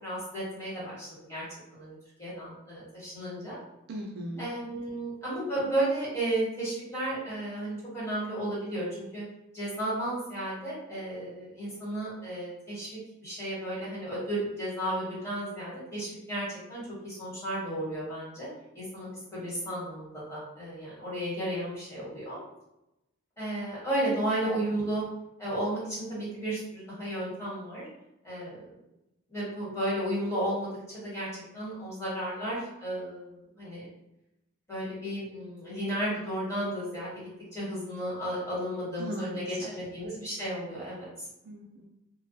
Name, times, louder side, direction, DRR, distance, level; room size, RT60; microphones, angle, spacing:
voice 1, 0.0-1.4 1.7-3.6 4.4-9.2 9.5-12.9 13.2-18.5 18.7-22.4 23.4-25.0 25.4-27.8 28.2-28.7 29.3-31.3 31.5-33.9 34.7-37.2 37.5-41.1, right 1 dB, 15° left, -9 dB, 1.2 m, -33 dB
voice 2, 3.9-4.5 24.1-24.7 39.0-39.7 41.4-41.9, right 1 dB, 50° right, 0 dB, 0.3 m, -39 dB
2.2 x 2.1 x 2.6 m, 0.88 s
head